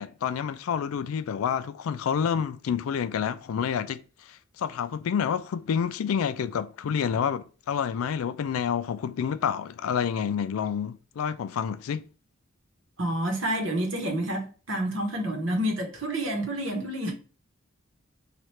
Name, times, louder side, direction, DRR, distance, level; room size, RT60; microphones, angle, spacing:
voice 1, 0.0-12.1, left 7 dB, 85° left, 0.3 m, -29 dB
voice 2, 13.0-17.1, right 1 dB, 65° right, 1.0 m, -29 dB
3.2 x 2.4 x 4.2 m
head